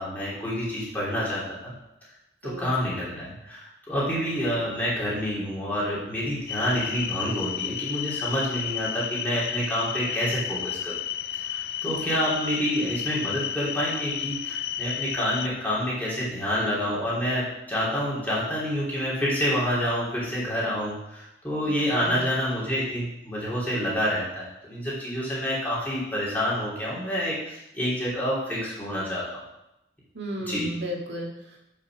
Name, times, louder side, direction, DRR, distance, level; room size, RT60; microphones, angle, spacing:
voice 1, 0.0-1.7 2.4-11.0 11.4-29.4 30.5-30.7, equal, 10° left, -8 dB, 3.4 m, -28 dB
sound 1, 6.5-15.5, left 10 dB, 55° left, 0.4 m, -32 dB
voice 2, 11.9-12.3 21.9-22.3 30.1-31.6, equal, 75° right, -2 dB, 1.9 m, -35 dB
8.9 x 5.8 x 6.1 m, 0.88 s
head